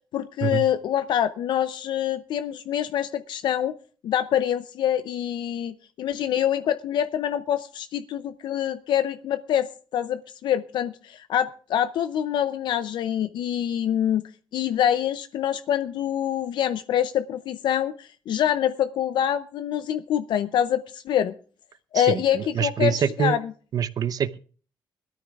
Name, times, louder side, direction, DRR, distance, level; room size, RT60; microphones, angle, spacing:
voice 1, 0.1-3.8 4.0-14.2 14.5-21.3 21.9-23.4, left 10 dB, 75° left, 11 dB, 0.6 m, -25 dB
voice 2, 21.9-23.4 23.7-24.4, right 8 dB, 50° right, 15 dB, 0.7 m, -25 dB
21.5 x 13.5 x 2.4 m, 0.40 s
cardioid pair, 135°, 8 cm